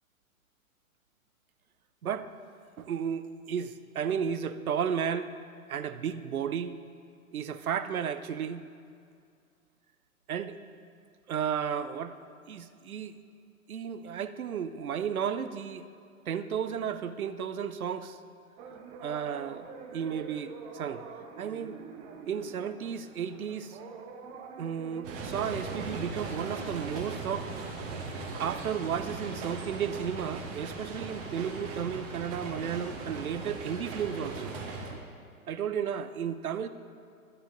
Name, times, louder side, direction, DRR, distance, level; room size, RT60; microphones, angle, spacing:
voice 1, 2.8-5.3 5.7-6.8 7.3-8.6 10.3-10.6 11.3-12.2 12.5-13.2 13.7-15.9 16.3-18.2 19.0-21.0 21.4-21.8 22.3-23.8 24.6-27.5 28.4-34.6 34.9-35.0 35.5-36.7, right 8 dB, 80° right, 11 dB, 0.7 m, -33 dB
sound 1, 18.6-26.0, right 5 dB, 15° right, 0.4 m, -46 dB
sound 2, 25.0-34.9, right 3 dB, 30° right, 1.5 m, -38 dB
13.0 x 7.8 x 3.9 m, 2.4 s
figure-of-eight pair, 115°, 42 cm